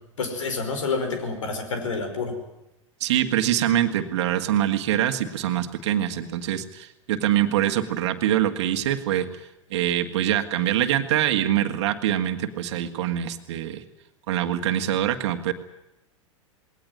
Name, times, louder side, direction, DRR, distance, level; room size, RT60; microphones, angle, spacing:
voice 1, 0.2-2.3, left 4 dB, 70° left, 7 dB, 5.1 m, -28 dB
voice 2, 3.0-9.3 9.7-13.8 14.3-15.5, right 11 dB, 55° right, 8 dB, 1.8 m, -24 dB
20.0 x 18.5 x 9.4 m, 0.92 s
figure-of-eight pair, 95°, 17 cm